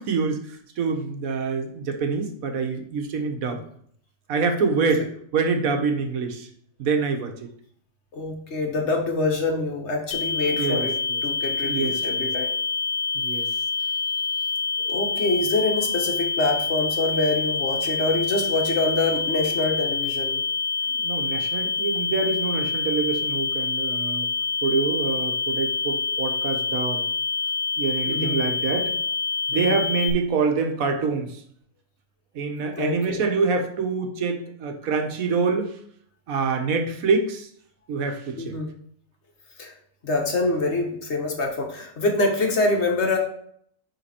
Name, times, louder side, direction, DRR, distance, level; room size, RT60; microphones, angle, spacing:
voice 1, 0.0-3.6 4.3-6.5 6.8-7.5 10.5-11.2 11.6-12.3 13.1-13.5 20.9-24.3 24.6-27.1 27.8-29.0 29.5-31.4 32.3-35.7 36.3-37.5 37.9-38.5, right 4 dB, 90° right, 5 dB, 1.4 m, -26 dB
voice 2, 8.1-10.9 11.2-12.5 14.9-20.4 28.1-28.4 29.5-29.8 32.8-33.2 38.4-38.7 39.6-39.7 40.0-43.2, left 2 dB, 55° left, 2 dB, 1.5 m, -25 dB
sound 1, 10.1-30.1, left 5 dB, 80° left, 1.5 m, -27 dB
9.3 x 3.8 x 4.3 m, 0.64 s
omnidirectional pair, 1.4 m